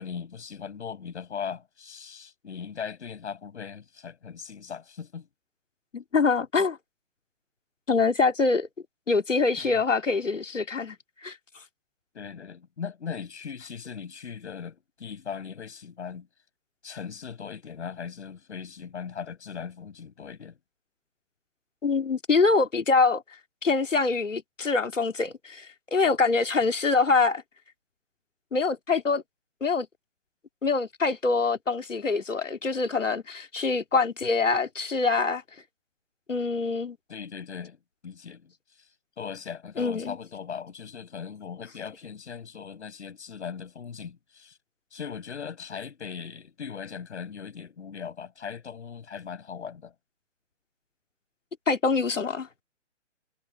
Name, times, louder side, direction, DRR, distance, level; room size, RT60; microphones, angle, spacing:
voice 1, 0.0-5.3 9.6-9.7 12.1-16.3 16.8-20.6 37.1-37.8 38.0-38.5 39.2-44.6 44.9-49.9, left 6 dB, 65° left, 8.0 m, -39 dB
voice 2, 5.9-6.8 7.9-8.7 9.1-11.0 11.2-11.4 21.8-23.2 23.6-27.4 28.5-29.2 29.6-29.9 30.6-35.4 36.3-37.0 39.8-40.2 51.7-52.5, left 4 dB, 85° left, 2.7 m, -24 dB
figure-of-eight pair, 135°, 37 cm